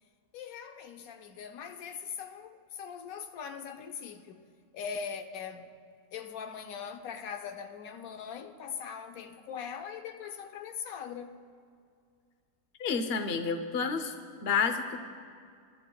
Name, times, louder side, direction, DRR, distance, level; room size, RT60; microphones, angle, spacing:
voice 1, 0.3-4.4 4.7-5.7 6.1-11.4, left 7 dB, 85° left, 1.1 m, -41 dB
voice 2, 12.8-14.1 14.4-15.0, left 5 dB, 50° left, 1.0 m, -29 dB
28.5 x 12.0 x 2.3 m
omnidirectional pair, 1.4 m